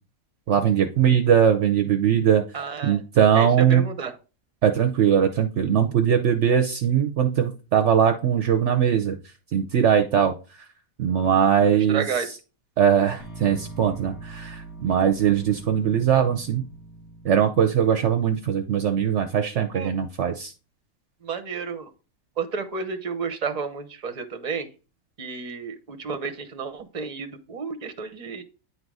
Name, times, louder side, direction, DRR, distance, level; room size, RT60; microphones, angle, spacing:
voice 1, 0.5-2.4 2.8-3.8 4.6-9.2 9.5-10.3 11.0-12.1 12.8-16.6 17.2-20.5, right 8 dB, 60° right, 6 dB, 0.9 m, -20 dB
voice 2, 2.5-3.0 3.3-4.2 11.9-12.3 19.7-19.9 21.2-21.9 22.4-24.7 25.2-28.4, right 5 dB, 30° right, 7 dB, 1.0 m, -31 dB
sound 1, 13.2-19.2, right 3 dB, 85° left, 3.0 m, -43 dB
9.6 x 4.0 x 4.7 m, 0.33 s
omnidirectional pair, 1.5 m